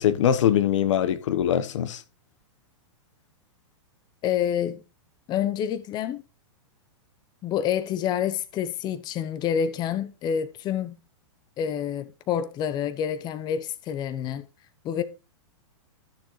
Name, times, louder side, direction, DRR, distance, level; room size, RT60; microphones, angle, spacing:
voice 1, 0.0-2.0, left 9 dB, 70° left, 1.1 m, -22 dB
voice 2, 4.2-4.8 5.3-6.2 7.4-11.0 11.6-14.4 14.8-15.0, left 9 dB, 25° left, 0.8 m, -28 dB
13.0 x 6.6 x 3.2 m
hypercardioid pair, 140°, 16 cm